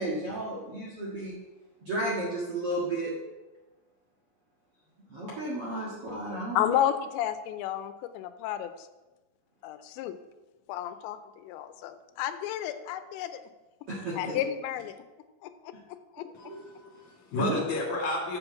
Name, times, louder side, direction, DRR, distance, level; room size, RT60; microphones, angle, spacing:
voice 1, 0.0-1.4 1.8-3.2 5.1-6.7 13.9-14.3 16.4-16.6 17.4-17.7, right 1 dB, 55° right, -6 dB, 1.7 m, -33 dB
voice 2, 6.5-8.9 9.6-10.2 10.7-13.4 14.1-15.0 15.4-16.5, left 11 dB, 85° left, 10 dB, 2.9 m, -32 dB
voice 3, 16.3-18.4, left 2 dB, 50° left, -2 dB, 3.1 m, -32 dB
7.6 x 7.0 x 7.0 m, 1.1 s
omnidirectional pair, 5.1 m